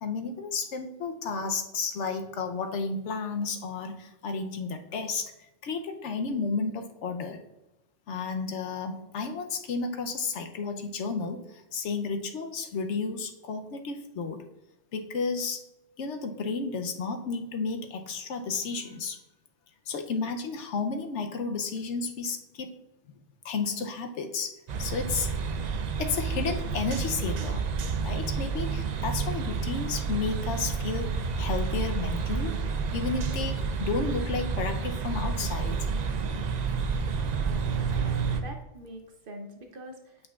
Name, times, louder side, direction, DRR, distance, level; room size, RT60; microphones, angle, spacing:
voice 1, 0.0-5.3 5.6-7.4 8.1-14.4 14.9-15.6 16.0-19.2 19.9-22.8 23.4-24.5 24.8-25.3 26.0-27.6 28.0-32.5 32.9-35.9, left 4 dB, 70° left, 6 dB, 0.9 m, -32 dB
sound 1, 24.7-38.4, right 5 dB, 70° right, 0.4 m, -30 dB
voice 2, 37.5-40.2, right 1 dB, 50° right, 3 dB, 0.8 m, -44 dB
8.3 x 5.1 x 2.3 m, 0.93 s
omnidirectional pair, 1.3 m